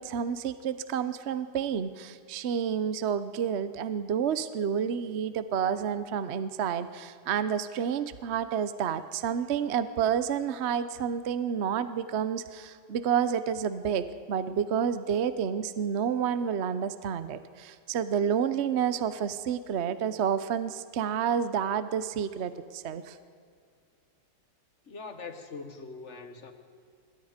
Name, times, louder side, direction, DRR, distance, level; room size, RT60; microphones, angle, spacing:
voice 1, 0.0-23.2, right 8 dB, 55° right, 12 dB, 0.7 m, -29 dB
voice 2, 24.9-26.5, left 4 dB, 40° left, 7 dB, 1.5 m, -42 dB
26.0 x 21.0 x 5.1 m, 2.2 s
omnidirectional pair, 2.0 m